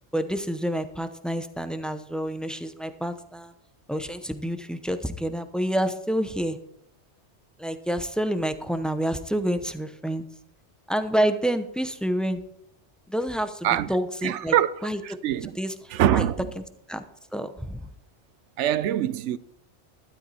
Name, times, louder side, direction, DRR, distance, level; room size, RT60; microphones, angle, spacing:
voice 1, 0.1-3.5 3.9-6.6 7.6-10.2 10.9-12.4 13.1-13.6 13.9-14.5 14.8-15.0 15.6-15.7 16.1-16.2 16.9-17.0 17.3-17.8, right 1 dB, ahead, 0.6 m, -28 dB
voice 2, 14.2-15.6 15.9-16.5 18.6-19.4, right 11 dB, 90° right, 0.9 m, -24 dB
12.5 x 11.5 x 4.2 m
omnidirectional pair, 1.2 m